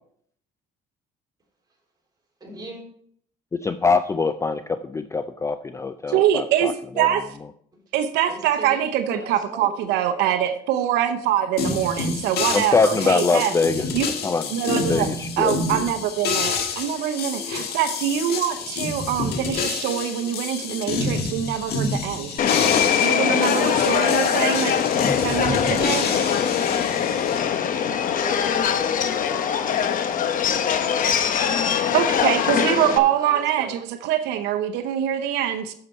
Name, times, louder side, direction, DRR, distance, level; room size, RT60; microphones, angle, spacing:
voice 1, 2.4-2.8 8.3-10.3 27.9-32.0 32.8-33.7, right 2 dB, 25° right, -2 dB, 3.8 m, -39 dB
voice 2, 3.6-7.1 12.5-13.8 14.2-14.5 14.9-15.9, left 4 dB, 15° left, 11 dB, 0.4 m, -23 dB
voice 3, 6.1-7.3 7.9-13.5 13.9-14.2 14.5-15.1 15.4-22.4 23.0-24.8 25.2-26.1 31.9-35.7, right 10 dB, 90° right, 9 dB, 0.7 m, -24 dB
sound 1, 11.6-27.4, left 5 dB, 70° left, 1.5 m, -28 dB
Subway metro underground, 22.4-33.0, left 8 dB, 55° left, 0.9 m, -22 dB
9.7 x 6.7 x 4.2 m, 0.63 s
cardioid pair, 110°, 17 cm